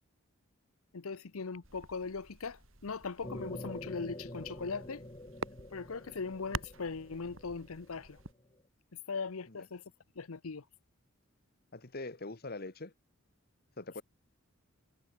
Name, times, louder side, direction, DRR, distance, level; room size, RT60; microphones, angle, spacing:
voice 1, 0.9-5.0 5.7-8.2 9.1-9.8 10.2-10.6, left 4 dB, 85° left, 0.8 m, -39 dB
sound 1, 1.6-8.3, right 3 dB, 65° right, 7.4 m, -47 dB
sound 2, 3.2-8.3, left 1 dB, 25° left, 2.2 m, -46 dB
voice 2, 11.7-12.9 13.8-14.0, left 2 dB, 45° left, 1.5 m, -43 dB
head